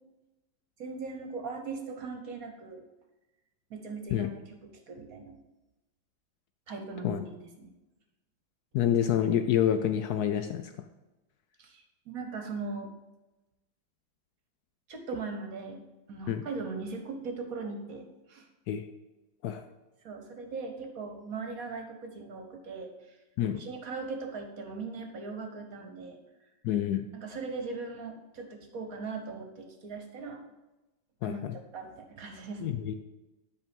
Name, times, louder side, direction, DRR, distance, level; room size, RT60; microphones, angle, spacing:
voice 1, 0.8-2.8 3.7-4.6 4.9-5.4 6.7-7.7 11.6-12.9 14.9-15.8 16.1-18.5 20.0-23.2 23.5-26.2 27.2-30.4 31.2-31.4 31.7-32.8, right 4 dB, 50° right, 4 dB, 1.3 m, -39 dB
voice 2, 8.7-10.7 16.3-16.4 18.7-18.9 19.4-19.7 23.4-23.6 26.6-27.1 31.2-31.6 32.6-32.9, left 10 dB, 80° left, 8 dB, 0.9 m, -28 dB
10.0 x 4.7 x 5.2 m, 1.0 s
omnidirectional pair, 2.2 m